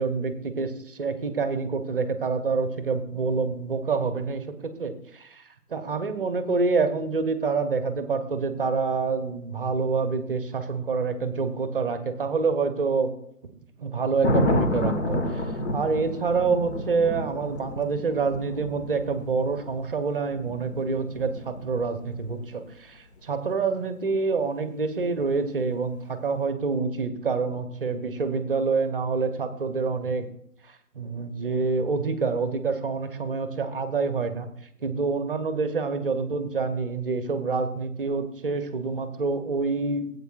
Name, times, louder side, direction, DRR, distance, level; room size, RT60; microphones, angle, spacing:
voice 1, 0.0-5.4 5.7-13.1 13.8-30.3 30.7-34.5 34.8-40.1, right 4 dB, 35° right, 9 dB, 0.8 m, -27 dB
Thunder, 14.2-22.3 25.0-25.3, left 1 dB, 45° left, 1.3 m, -30 dB
17.0 x 8.1 x 2.4 m, 0.69 s
figure-of-eight pair, 145°, 46 cm